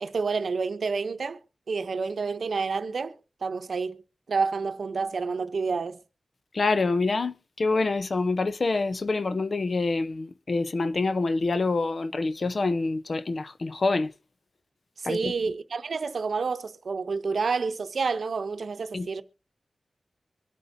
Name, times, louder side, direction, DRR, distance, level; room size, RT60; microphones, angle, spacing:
voice 1, 0.0-1.4 1.7-3.2 3.4-4.0 4.3-6.0 15.0-19.2, right 4 dB, 80° right, 0.7 m, -29 dB
voice 2, 6.5-14.1 15.0-15.3 18.9-19.1, left 3 dB, 60° left, 0.7 m, -26 dB
23.5 x 8.1 x 2.7 m
wide cardioid pair, 80°, 0 cm